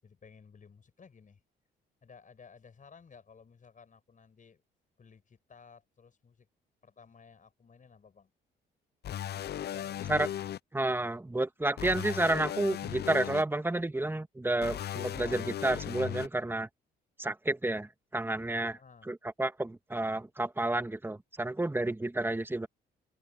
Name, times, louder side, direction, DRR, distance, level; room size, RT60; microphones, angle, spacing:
voice 1, 0.0-1.4 2.0-4.6 5.0-6.5 6.8-8.3 9.3-10.3 18.6-19.1, left 5 dB, 40° left, 7.4 m, -56 dB
sound 1, 9.0-10.6 11.8-13.4 14.6-16.3, left 11 dB, 55° left, 0.6 m, -37 dB
voice 2, 10.7-16.7 17.2-18.8 19.1-22.7, right 2 dB, 10° right, 1.6 m, -30 dB
open air
cardioid pair, 90°, 20 cm